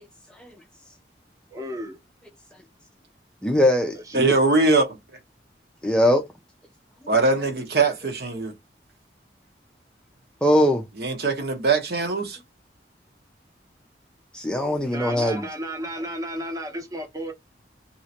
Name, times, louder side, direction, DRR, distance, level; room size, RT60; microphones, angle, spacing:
voice 1, 1.5-2.0 3.9-4.3 14.9-17.3, equal, 20° right, 0.8 m, -33 dB
voice 2, 3.4-4.3 5.8-6.3 10.4-10.8 14.3-15.5, left 1 dB, 5° left, 0.5 m, -21 dB
voice 3, 4.1-5.0 7.1-8.5 11.0-12.4, right 3 dB, 60° right, 1.0 m, -21 dB
3.1 x 2.8 x 2.8 m
head